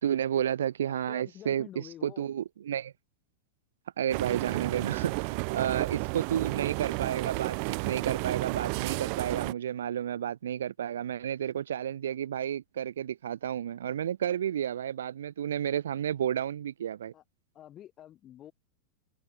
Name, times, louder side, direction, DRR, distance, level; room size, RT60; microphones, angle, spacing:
voice 1, 0.0-2.9 4.0-17.1, right 9 dB, 65° right, 2.9 m, -31 dB
voice 2, 0.9-2.3 17.1-17.2 17.5-18.5, left 11 dB, 30° left, 7.2 m, -48 dB
sound 1, 4.1-9.5, right 40 dB or more, 45° right, 1.2 m, -32 dB
open air
figure-of-eight pair, 90°, 0 cm